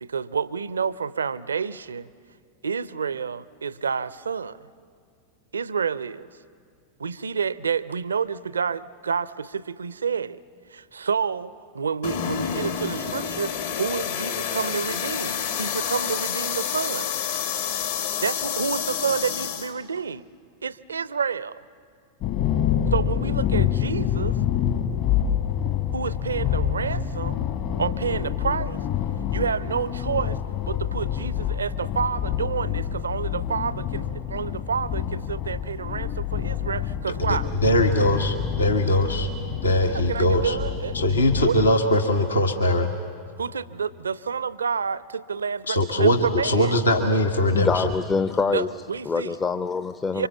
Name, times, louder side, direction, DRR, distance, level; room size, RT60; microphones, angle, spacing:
voice 1, 0.0-2.1 2.6-4.7 5.5-6.3 7.0-10.4 10.7-17.1 18.2-20.3 20.6-21.6 22.9-24.4 25.9-27.4 27.8-28.8 29.3-30.4 30.7-37.5 39.9-41.0 41.4-41.6 43.4-46.7 48.5-49.4 50.1-50.3, right 6 dB, 75° right, 18 dB, 0.6 m, -29 dB
sound 1, 12.0-19.7, left 8 dB, 60° left, 2.0 m, -28 dB
sound 2, 22.2-41.7, left 9 dB, 45° left, 1.7 m, -27 dB
voice 2, 37.3-39.3 39.6-40.6 40.9-42.9 45.7-47.9, left 1 dB, 75° left, 5 dB, 1.5 m, -21 dB
voice 3, 47.5-48.7 49.1-50.3, left 5 dB, 20° left, 11 dB, 0.6 m, -25 dB
27.0 x 25.0 x 7.3 m, 2.2 s
figure-of-eight pair, 90°, 0 cm